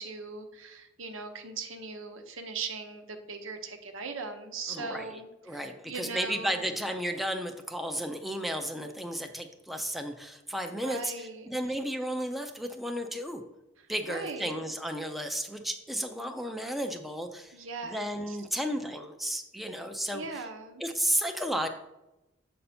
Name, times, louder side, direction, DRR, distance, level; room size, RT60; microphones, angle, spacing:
voice 1, 0.0-6.8 10.7-11.5 13.8-14.6 17.5-18.4 20.1-20.8, right 4 dB, 90° right, 6 dB, 0.9 m, -40 dB
voice 2, 4.7-13.4 13.9-17.6 17.8-20.4 20.8-21.7, equal, ahead, 5 dB, 0.5 m, -33 dB
7.6 x 5.5 x 4.2 m, 0.96 s
head